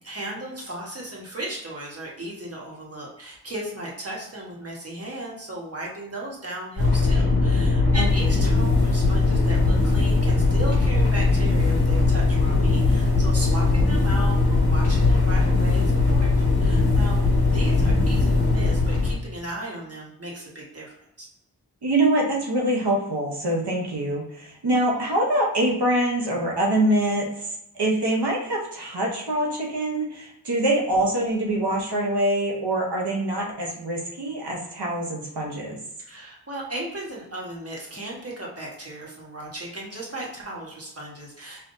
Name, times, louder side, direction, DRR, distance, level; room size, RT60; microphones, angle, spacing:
voice 1, 0.0-17.2 17.5-21.3 23.7-23.8 24.9-25.0 36.0-41.7, right 1 dB, 40° right, -4 dB, 1.3 m, -36 dB
sound 1, 6.8-19.2, left 3 dB, 70° left, 1.3 m, -20 dB
voice 2, 21.8-35.8, right 1 dB, 90° right, -2 dB, 0.9 m, -24 dB
5.4 x 2.7 x 2.6 m, 0.82 s
wide cardioid pair, 55°, 39 cm